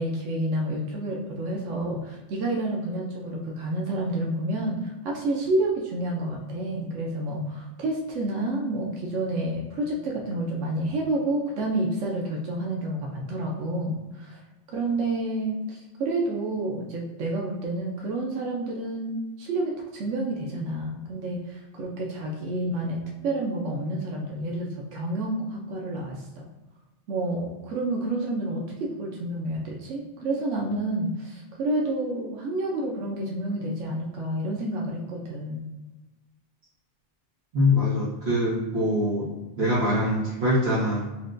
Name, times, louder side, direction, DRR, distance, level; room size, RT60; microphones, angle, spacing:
voice 1, 0.0-14.4 14.7-26.4 27.1-35.6, right 1 dB, 85° right, -1 dB, 1.0 m, -29 dB
voice 2, 37.5-39.3 39.6-41.0, left 1 dB, 60° right, -9 dB, 1.1 m, -23 dB
5.8 x 2.1 x 2.5 m, 1.1 s
omnidirectional pair, 1.2 m